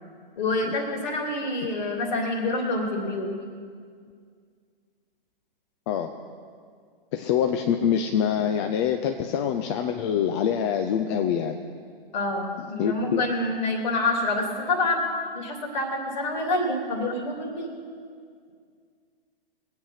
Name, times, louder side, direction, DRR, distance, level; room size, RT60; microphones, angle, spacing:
voice 1, 0.4-3.3 12.1-15.0 15.3-18.0, left 2 dB, 50° left, 3 dB, 2.9 m, -27 dB
voice 2, 7.1-11.6 12.8-13.2, left 8 dB, 30° left, 5 dB, 0.6 m, -25 dB
22.0 x 8.8 x 5.7 m, 2.1 s
figure-of-eight pair, 125°, 29 cm